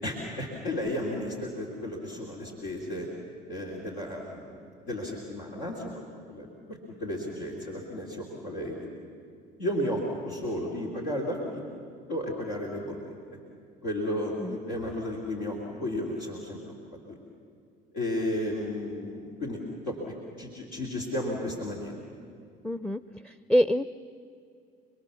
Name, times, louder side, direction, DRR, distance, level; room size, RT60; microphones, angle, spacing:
voice 1, 0.0-3.1 3.5-4.6 4.8-6.0 6.3-8.9 9.6-11.6 12.1-13.1 13.8-16.7 17.1-17.2 17.9-19.6 19.8-20.0 20.4-21.9, left 1 dB, 90° left, -3 dB, 3.3 m, -33 dB
voice 2, 22.6-23.8, equal, 5° left, 14 dB, 0.5 m, -26 dB
28.5 x 21.0 x 7.1 m, 2.3 s
hypercardioid pair, 65°, 21 cm